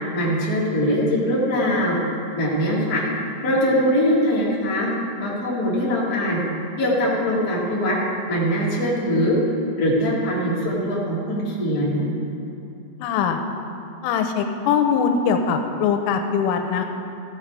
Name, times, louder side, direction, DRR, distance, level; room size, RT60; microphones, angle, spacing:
voice 1, 0.1-2.0 2.3-3.0 3.4-4.9 5.2-6.4 6.8-8.0 8.3-9.3 9.8-12.0, equal, 35° left, -6 dB, 1.5 m, -22 dB
voice 2, 13.0-13.4 14.0-16.9, left 6 dB, 85° left, 5 dB, 3.2 m, -21 dB
15.0 x 8.1 x 4.8 m, 2.8 s
omnidirectional pair, 5.8 m